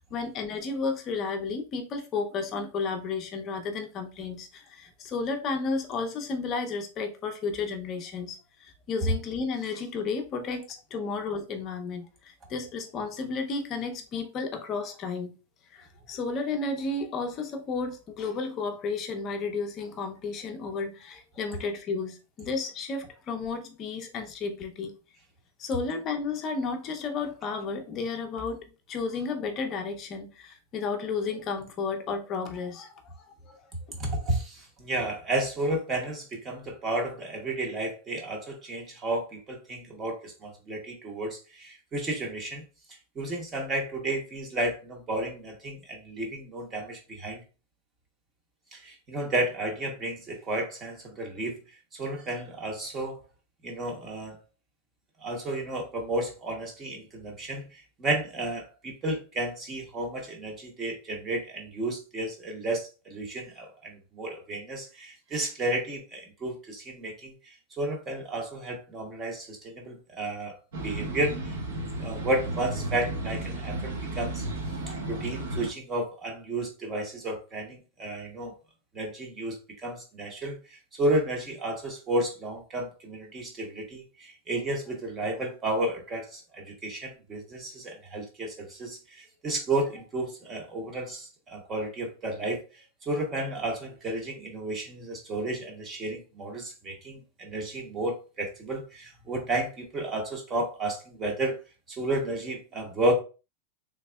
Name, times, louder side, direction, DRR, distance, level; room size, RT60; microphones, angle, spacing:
voice 1, 0.0-15.3 15.7-24.9 25.6-33.6 33.9-34.0, left 4 dB, 25° left, 0.6 m, -33 dB
voice 2, 34.0-42.6 43.2-47.4 48.7-51.6 51.9-53.2 53.6-54.4 55.2-70.6 70.8-74.4 75.1-78.6 78.9-101.6 101.9-103.2, right 1 dB, 20° right, 0.8 m, -32 dB
sound 1, 70.7-75.7, right 2 dB, 75° right, 1.0 m, -33 dB
3.5 x 3.2 x 2.2 m
supercardioid pair, 165°, 0 cm